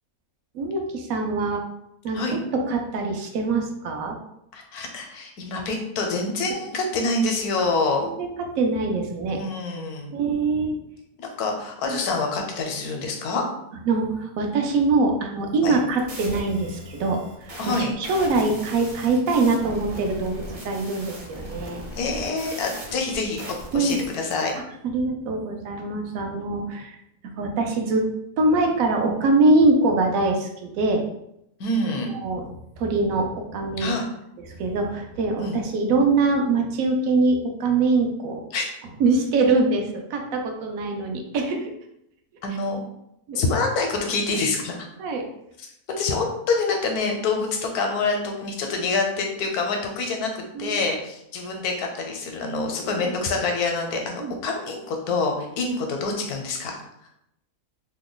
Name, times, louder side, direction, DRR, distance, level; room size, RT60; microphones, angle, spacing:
voice 1, 0.5-1.6 2.0-4.2 7.6-7.7 8.0-9.4 10.1-10.8 11.9-12.0 13.9-21.8 23.7-24.0 24.8-27.0 27.4-28.0 28.4-31.0 32.1-32.4 32.8-33.9 34.5-38.4 39.0-41.7 43.3-43.4 45.0-45.3 50.5-50.8 53.0-53.2 54.2-54.4 55.6-55.7, right 3 dB, 70° right, 3 dB, 0.9 m, -23 dB
voice 2, 4.5-8.1 9.4-10.1 11.2-13.4 15.6-15.8 17.6-17.9 21.9-23.4 23.7-24.5 31.6-32.1 33.8-34.0 35.4-35.6 38.5-38.7 42.4-42.8 43.3-44.7 46.0-56.8, left 3 dB, 80° left, 3 dB, 1.2 m, -26 dB
sound 1, 15.5-24.5, equal, 40° right, 0.5 m, -39 dB
2.9 x 2.2 x 3.8 m, 0.79 s
omnidirectional pair, 1.6 m